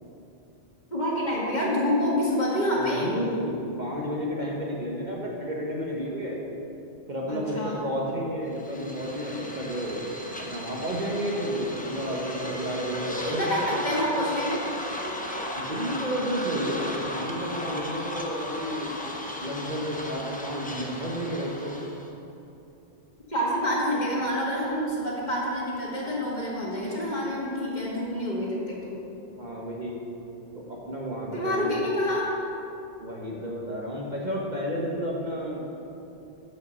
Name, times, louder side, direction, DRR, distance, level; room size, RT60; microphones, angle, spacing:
voice 1, 0.9-3.1 7.3-7.8 13.2-14.6 23.3-29.0 31.3-32.3, equal, 40° left, -5 dB, 2.1 m, -27 dB
voice 2, 2.7-6.4 7.1-10.1 10.4-14.1 15.5-18.9 19.4-21.8 29.4-30.0 30.5-31.8 33.0-35.6, equal, 40° right, -3 dB, 1.2 m, -31 dB
sound 1, 8.5-22.1, left 1 dB, 10° left, 0.7 m, -36 dB
13.0 x 5.5 x 5.4 m, 2.9 s
omnidirectional pair, 1.2 m